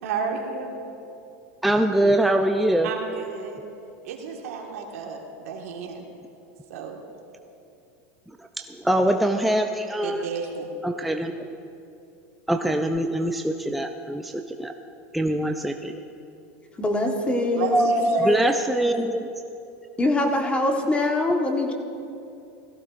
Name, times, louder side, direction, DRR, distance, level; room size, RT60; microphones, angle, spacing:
voice 1, 0.0-0.7 2.8-3.6 4.0-6.0 6.7-7.0 10.0-10.7 17.5-18.5, right 6 dB, 80° right, 1 dB, 1.7 m, -32 dB
voice 2, 1.6-2.9 8.6-10.3 10.8-11.5 12.5-14.7 15.1-15.9 17.7-19.2, right 1 dB, ahead, 4 dB, 0.4 m, -23 dB
voice 3, 16.8-17.9 20.0-21.7, left 2 dB, 15° left, 3 dB, 1.3 m, -23 dB
17.0 x 14.5 x 2.5 m, 2.7 s
supercardioid pair, 130°, 8 cm